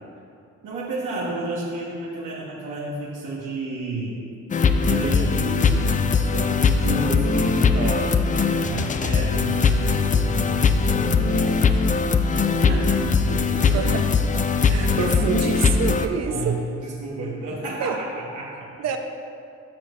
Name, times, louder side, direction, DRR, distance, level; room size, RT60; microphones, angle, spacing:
voice 1, 0.6-4.2 4.8-8.1 8.6-11.6 12.6-12.9 13.3-13.9 16.3-18.7, right 2 dB, 80° right, -6 dB, 1.3 m, -31 dB
sound 1, 4.5-16.1, left 5 dB, 25° left, 0.4 m, -20 dB
voice 2, 7.7-8.1 11.4-11.7 13.7-14.1 14.7-16.6 17.8-18.0 18.8-19.0, right 6 dB, 60° right, 5 dB, 0.8 m, -27 dB
13.0 x 6.2 x 2.6 m, 2.5 s
cardioid pair, 90°, 30 cm